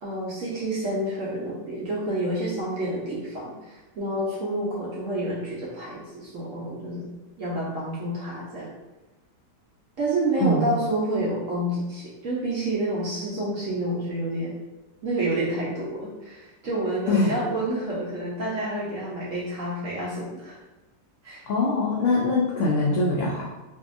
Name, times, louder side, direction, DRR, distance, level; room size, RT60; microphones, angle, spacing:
voice 1, 0.0-7.1 7.4-8.7 10.0-14.5 15.0-20.6 21.2-21.4, right 1 dB, 65° right, -6 dB, 0.8 m, -29 dB
voice 2, 21.5-23.4, left 2 dB, 85° left, -4 dB, 0.6 m, -23 dB
2.7 x 2.6 x 2.4 m, 1.1 s
omnidirectional pair, 1.9 m